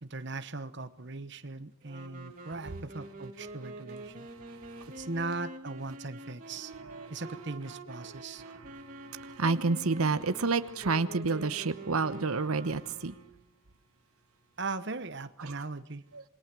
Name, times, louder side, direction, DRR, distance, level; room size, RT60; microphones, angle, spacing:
voice 1, 0.0-4.3 4.9-6.7 7.1-8.4 14.6-16.0, right 3 dB, 55° right, 1.2 m, -39 dB
Wind instrument woodwind instrument, 1.8-13.6, right 1 dB, 40° right, 2.9 m, -46 dB
voice 2, 4.5-5.0 6.5-7.1 8.0-13.1 15.4-15.6 16.1-16.2, right 4 dB, 85° right, 1.0 m, -31 dB
27.5 x 21.5 x 6.2 m
head